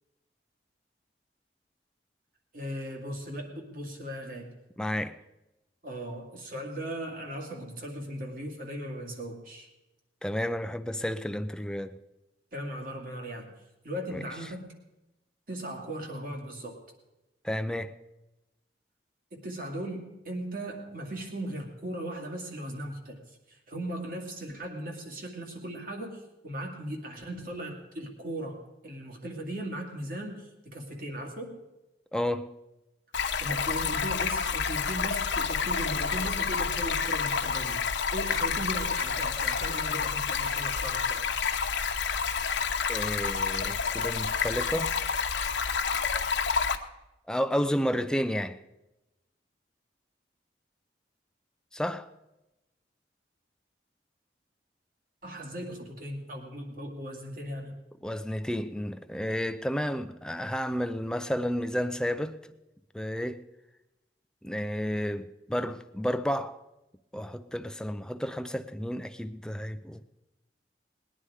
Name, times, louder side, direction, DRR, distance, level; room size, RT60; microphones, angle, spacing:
voice 1, 2.5-4.5 5.8-9.7 12.5-13.5 13.8-14.7 15.5-16.8 19.3-23.2 23.5-31.6 33.4-41.2 55.2-57.7, right 1 dB, 50° right, 2.4 m, -38 dB
voice 2, 4.8-5.2 10.2-12.0 14.1-14.2 17.4-18.0 32.1-32.5 42.9-45.0 47.3-48.6 51.7-52.1 58.0-62.5 62.9-63.4 64.4-66.6 67.1-70.0, equal, 5° left, 0.5 m, -31 dB
Stream, 33.1-46.8, left 6 dB, 85° left, 1.0 m, -29 dB
20.0 x 9.9 x 5.0 m
head